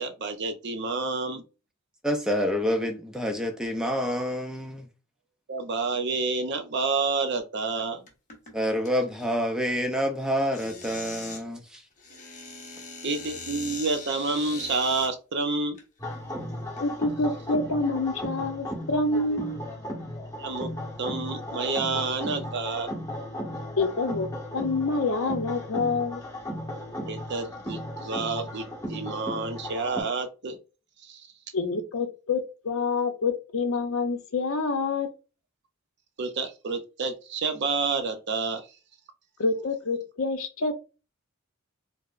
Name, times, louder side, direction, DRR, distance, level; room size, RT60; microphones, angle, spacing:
voice 1, 0.0-1.4 5.5-8.0 13.0-15.8 20.4-20.7 21.0-22.9 27.1-30.6 31.0-31.2 36.2-38.7, right 4 dB, 55° right, 0.6 m, -29 dB
voice 2, 2.0-4.9 8.5-11.8, equal, 5° right, 0.5 m, -27 dB
sound 1, 8.1-8.5 8.8-9.2 10.4-11.4 12.0-15.1 15.8-15.9 16.6-16.9, left 3 dB, 35° left, 1.0 m, -41 dB
sound 2, 16.0-30.0, equal, 20° left, 1.5 m, -36 dB
voice 3, 16.8-19.6 23.8-24.3 24.5-26.2 31.5-35.1 39.4-40.7, left 3 dB, 70° left, 0.7 m, -27 dB
4.7 x 2.0 x 2.4 m
head